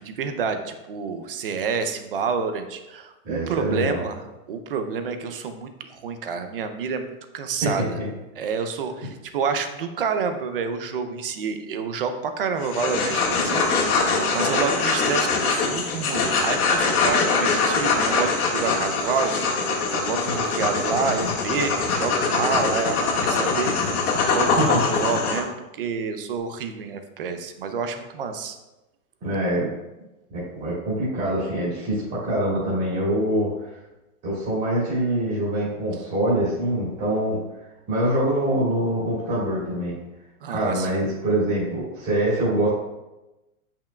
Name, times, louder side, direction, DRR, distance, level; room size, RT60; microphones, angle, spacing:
voice 1, 0.0-4.2 4.5-7.1 7.3-8.0 8.4-19.4 19.9-24.0 24.2-28.6 40.4-41.0, right 5 dB, 40° right, 8 dB, 0.5 m, -28 dB
voice 2, 3.2-4.0 7.6-8.1 24.6-24.7 29.2-29.7 30.3-33.7 34.2-37.4 37.9-40.0 40.5-42.7, right 1 dB, 20° right, -9 dB, 2.1 m, -24 dB
sound 1, 12.6-25.4, left 4 dB, 85° left, 1.7 m, -23 dB
sound 2, 20.3-25.4, left 6 dB, 50° left, 0.7 m, -36 dB
8.9 x 5.7 x 2.2 m, 1.0 s
supercardioid pair, 180°, 43 cm